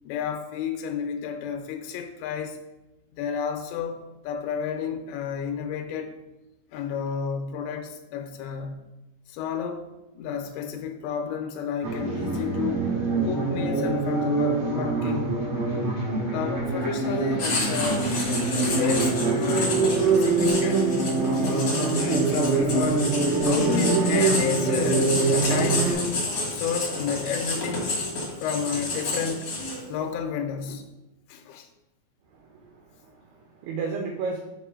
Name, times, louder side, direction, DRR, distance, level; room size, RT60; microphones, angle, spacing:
voice 1, 0.0-2.6 3.1-6.1 6.7-8.9 9.3-9.9 10.2-12.9 13.2-15.6 16.3-18.1 18.6-19.9 20.2-20.9 21.2-23.1 23.4-26.2 26.5-28.0 28.4-29.5 29.9-30.9 31.3-31.7, left 7 dB, 85° left, 4 dB, 2.9 m, -31 dB
sound 1, 11.8-25.9, right 3 dB, 55° right, 1.7 m, -24 dB
Writing, 17.4-30.0, left 2 dB, 55° left, 1.4 m, -30 dB
voice 2, 32.4-34.4, right 4 dB, 80° right, 1 dB, 2.5 m, -34 dB
6.1 x 5.4 x 3.7 m, 0.99 s
omnidirectional pair, 5.2 m